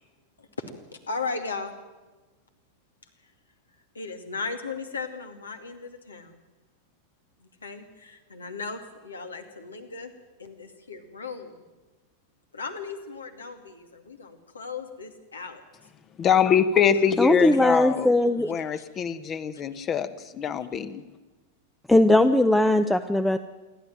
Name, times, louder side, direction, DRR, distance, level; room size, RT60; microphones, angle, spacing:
voice 1, 0.4-1.8 3.9-6.4 7.4-10.1 10.4-11.5 12.5-15.6 17.0-17.2 17.4-17.8 18.7-18.8, left 4 dB, 75° left, 6 dB, 2.4 m, -37 dB
voice 2, 16.2-18.1 18.5-21.0, left 8 dB, 30° left, 13 dB, 1.2 m, -24 dB
voice 3, 17.2-18.5 21.9-23.4, left 1 dB, 5° left, 10 dB, 0.8 m, -19 dB
28.0 x 12.0 x 9.2 m, 1.2 s
figure-of-eight pair, 90°, 0 cm